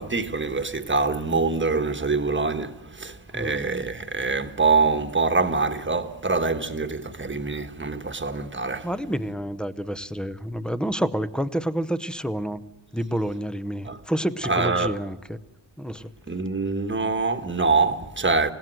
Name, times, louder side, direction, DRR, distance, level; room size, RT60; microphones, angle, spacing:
voice 1, 0.0-8.9 13.8-14.0 14.4-15.0 16.3-18.5, right 4 dB, 25° right, 1.4 m, -25 dB
voice 2, 8.8-12.6 12.9-15.4 15.8-16.1, equal, ahead, 0.8 m, -28 dB
29.0 x 17.5 x 7.6 m
wide cardioid pair, 155°, 48 cm